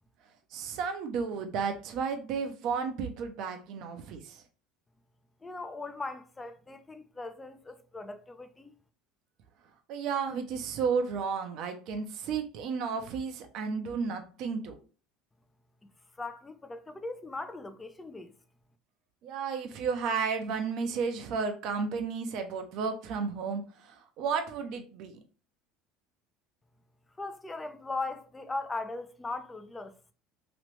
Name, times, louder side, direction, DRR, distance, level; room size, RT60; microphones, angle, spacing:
voice 1, 0.5-4.4 9.9-14.8 19.2-25.2, right 5 dB, 60° right, 0.7 m, -33 dB
voice 2, 5.4-8.7 16.2-18.3 27.2-29.9, left 3 dB, 15° left, 0.5 m, -39 dB
3.0 x 2.9 x 3.2 m
hypercardioid pair, 80°, 0 cm